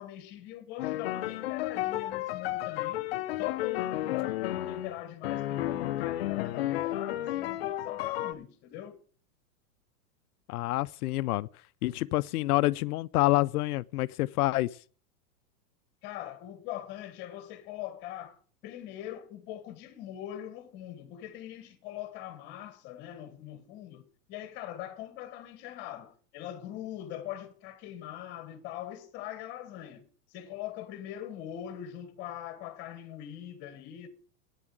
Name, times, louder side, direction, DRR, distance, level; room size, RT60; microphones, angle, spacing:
voice 1, 0.0-3.1 3.4-9.0 16.0-34.1, left 12 dB, 25° left, 1.3 m, -42 dB
sound 1, 0.8-8.3, left 14 dB, 45° left, 0.5 m, -32 dB
voice 2, 10.5-11.5 11.8-14.8, left 18 dB, 85° left, 0.6 m, -27 dB
9.2 x 7.2 x 9.1 m
supercardioid pair, 180°, 44 cm